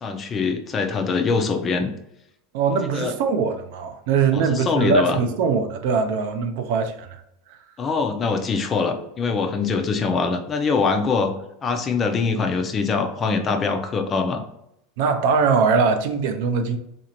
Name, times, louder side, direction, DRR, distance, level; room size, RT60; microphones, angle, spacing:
voice 1, 0.0-1.9 2.9-3.1 4.3-5.2 7.8-11.3 11.6-14.4, left 4 dB, 20° left, 0.4 m, -23 dB
voice 2, 2.5-7.1 7.5-7.6 15.0-16.8, right 5 dB, 55° right, 0.5 m, -21 dB
4.0 x 2.5 x 2.9 m
supercardioid pair, 175°, 0 cm